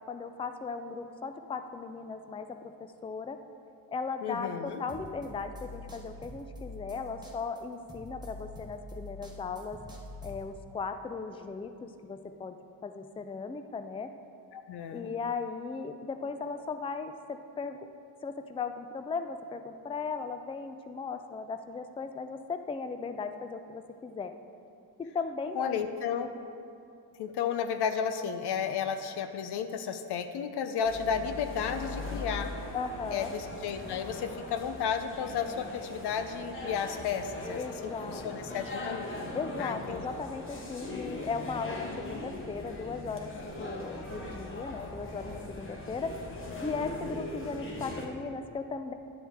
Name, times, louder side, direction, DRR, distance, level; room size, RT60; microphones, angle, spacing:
voice 1, 0.1-2.7 3.0-3.4 3.9-4.5 4.8-9.8 10.2-12.6 12.8-14.1 14.9-17.9 18.2-24.3 25.0-25.9 32.7-33.3 37.5-38.6 39.3-43.3 43.6-46.1 46.6-48.9, left 4 dB, 15° left, 8 dB, 0.4 m, -37 dB
voice 2, 4.2-4.8 14.5-15.1 25.6-26.3 27.2-32.5 33.1-39.1 39.6-40.0, left 7 dB, 70° left, 8 dB, 0.7 m, -33 dB
sound 1, 4.7-10.5, left 1 dB, 10° right, 1.3 m, -46 dB
sound 2, 30.8-48.1, left 2 dB, 30° left, 1.4 m, -40 dB
10.5 x 7.1 x 3.6 m, 2.6 s
cardioid pair, 75°, 41 cm